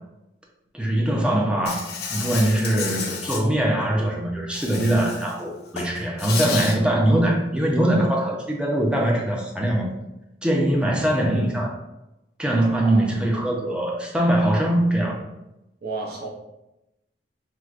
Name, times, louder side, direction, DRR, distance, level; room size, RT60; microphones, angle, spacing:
voice 1, 0.7-9.9 10.4-11.8 12.4-15.2, right 1 dB, 5° right, -2 dB, 0.5 m, -22 dB
Insect, 1.7-3.4 4.5-5.3 5.7-6.8, left 5 dB, 60° left, 0.5 m, -31 dB
voice 2, 12.7-13.1 15.8-16.3, right 3 dB, 60° right, -1 dB, 0.7 m, -32 dB
4.6 x 2.1 x 2.4 m, 0.92 s
head